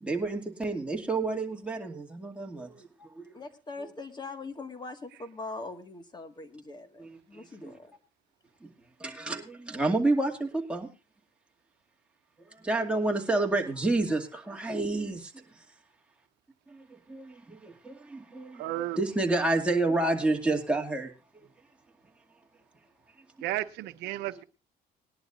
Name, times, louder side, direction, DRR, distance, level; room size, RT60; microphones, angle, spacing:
voice 1, 0.0-3.3 7.0-7.1 7.6-7.7 8.6-8.7 9.0-10.9 12.5-15.6 16.7-21.5, right 2 dB, 5° right, 2.3 m, -30 dB
voice 2, 3.3-7.9, left 3 dB, 25° left, 1.8 m, -42 dB
voice 3, 18.6-19.0 23.4-24.4, right 15 dB, 90° right, 0.9 m, -33 dB
20.0 x 11.0 x 2.5 m
cardioid pair, 110°, 17 cm